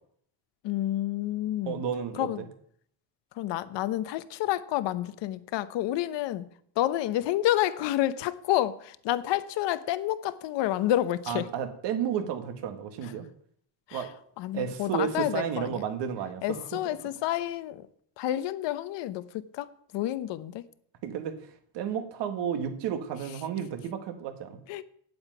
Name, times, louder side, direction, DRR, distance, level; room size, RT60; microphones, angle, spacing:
voice 1, 0.6-1.8 2.1-2.5 3.4-6.5 6.8-11.5 13.9-14.0 14.4-15.8 16.4-17.8 18.2-20.6 24.7-24.8, left 13 dB, 70° left, 1.0 m, -29 dB
voice 2, 1.7-2.5 11.3-13.3 13.9-14.1 14.5-17.0 21.0-24.6, right 8 dB, 70° right, 1.9 m, -32 dB
8.8 x 8.0 x 9.1 m
cardioid pair, 135°, 44 cm